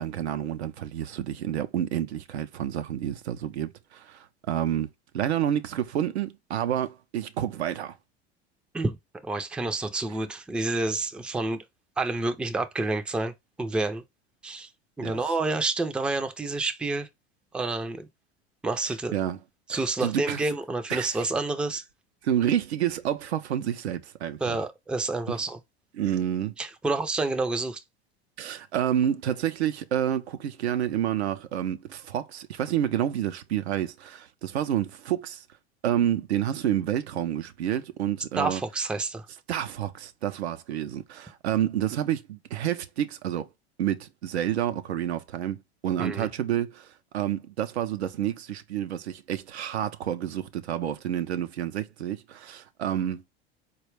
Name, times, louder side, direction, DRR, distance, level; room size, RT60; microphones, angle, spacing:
voice 1, 0.0-4.9 5.1-7.9 15.0-15.2 19.1-19.4 19.7-20.4 20.9-21.3 22.2-24.6 25.3-25.4 26.0-26.5 28.4-35.4 35.8-38.6 39.5-43.5 43.8-46.9 47.1-53.2, right 10 dB, 85° right, 0.5 m, -29 dB
voice 2, 9.2-11.6 12.0-13.3 13.6-14.0 14.4-14.7 15.0-17.1 17.5-18.1 18.6-19.1 19.7-21.8 24.4-25.6 26.6-27.8 38.4-39.3 46.0-46.3, right 3 dB, 5° right, 0.4 m, -28 dB
4.2 x 2.3 x 3.1 m
hypercardioid pair, 90°, 32 cm